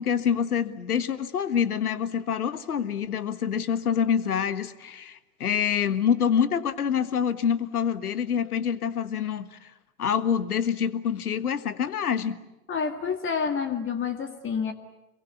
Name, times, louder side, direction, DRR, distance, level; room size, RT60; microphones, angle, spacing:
voice 1, 0.0-9.7 10.0-12.4, left 8 dB, 80° left, 13 dB, 1.6 m, -26 dB
voice 2, 12.7-14.7, left 6 dB, 25° left, 6 dB, 2.0 m, -28 dB
26.5 x 23.0 x 8.3 m, 0.99 s
hypercardioid pair, 95°, 44 cm